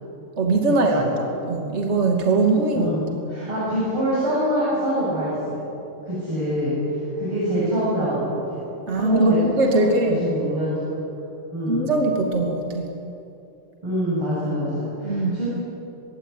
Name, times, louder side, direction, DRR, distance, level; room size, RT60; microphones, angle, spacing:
voice 1, 0.4-2.9 8.9-10.2 11.7-12.9 15.0-15.3, right 2 dB, 30° right, 1 dB, 2.9 m, -21 dB
voice 2, 2.7-5.6 6.1-8.4 8.9-9.4 9.6-9.9 10.2-10.9 11.5-11.9 13.8-15.5, equal, 80° right, -8 dB, 8.9 m, -25 dB
25.0 x 22.0 x 9.5 m, 2.8 s
omnidirectional pair, 2.3 m